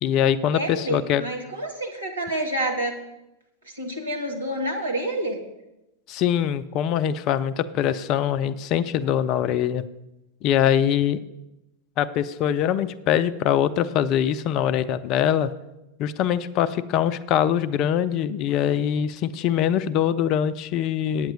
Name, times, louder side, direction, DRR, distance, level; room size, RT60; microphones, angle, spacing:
voice 1, 0.0-1.2 6.1-9.8 10.4-11.2 12.0-15.5 16.0-21.3, left 9 dB, 40° left, 14 dB, 0.5 m, -23 dB
voice 2, 0.5-2.9 3.7-5.4, right 1 dB, 75° right, 1 dB, 1.7 m, -28 dB
9.0 x 7.8 x 5.2 m, 0.94 s
figure-of-eight pair, 90°, 0 cm